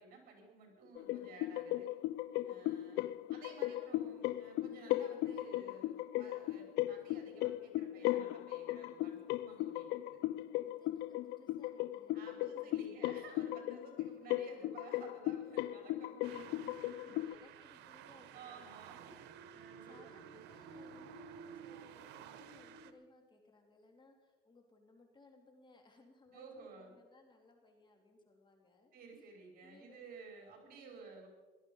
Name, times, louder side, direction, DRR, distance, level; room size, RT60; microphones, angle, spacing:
voice 1, 0.0-1.9 2.4-3.0 3.3-10.2 12.1-17.2 18.3-19.2 19.5-20.4 26.3-27.0 28.9-31.3, right 4 dB, 60° right, 2 dB, 5.5 m, -55 dB
sound 1, 1.0-17.3, left 15 dB, 85° left, 0.5 m, -37 dB
voice 2, 2.4-2.7 10.6-14.3 16.2-18.8 19.6-29.3 29.6-30.0 30.6-31.1, left 3 dB, 25° left, 3 dB, 3.2 m, -63 dB
sound 2, 16.2-22.9, right 7 dB, 85° right, 1.1 m, -53 dB
18.0 x 13.5 x 5.6 m, 1.3 s
cardioid pair, 110°, 17 cm